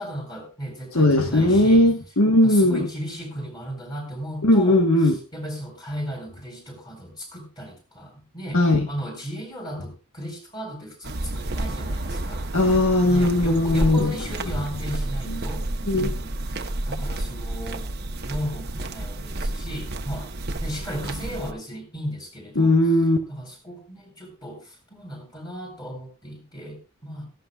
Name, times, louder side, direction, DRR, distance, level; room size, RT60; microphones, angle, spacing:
voice 1, 0.0-1.8 2.4-12.5 13.1-15.6 16.0-16.3 16.9-17.9 18.3-20.3 20.6-22.7 23.3-27.3, equal, 20° left, 2 dB, 7.8 m, -35 dB
voice 2, 0.9-2.9 4.4-5.1 8.5-8.9 12.5-14.1 15.9-16.1 22.6-23.2, left 1 dB, 70° left, 4 dB, 1.6 m, -18 dB
sound 1, 11.0-21.5, right 1 dB, 45° right, 1.2 m, -30 dB
17.0 x 17.0 x 2.5 m, 0.31 s
head